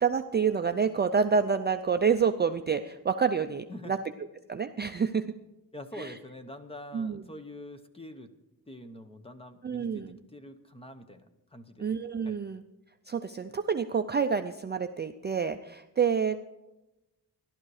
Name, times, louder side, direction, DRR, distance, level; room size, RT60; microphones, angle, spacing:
voice 1, 0.0-4.0 4.5-5.2 6.0-6.1 6.9-7.2 9.6-10.2 11.8-12.6 13.1-16.4, right 6 dB, 25° right, 7 dB, 0.4 m, -28 dB
voice 2, 3.7-4.0 5.7-8.3 8.7-11.9 12.2-12.4, left 1 dB, 15° left, 9 dB, 0.8 m, -45 dB
15.0 x 12.0 x 4.8 m, 0.96 s
wide cardioid pair, 180°, 41 cm